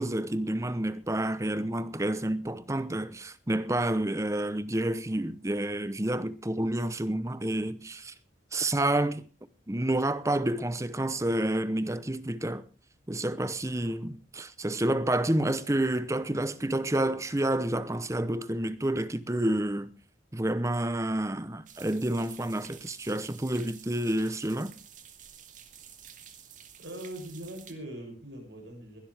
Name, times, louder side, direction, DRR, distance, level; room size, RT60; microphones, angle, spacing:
voice 1, 0.0-8.1 8.5-9.2 9.7-12.6 13.1-19.9 20.3-24.7, right 1 dB, 15° right, 0.8 m, -29 dB
sound 1, 21.7-27.7, right 9 dB, 45° right, 2.0 m, -51 dB
voice 2, 26.8-29.0, right 1 dB, 80° right, 7.4 m, -41 dB
21.5 x 12.5 x 3.5 m
head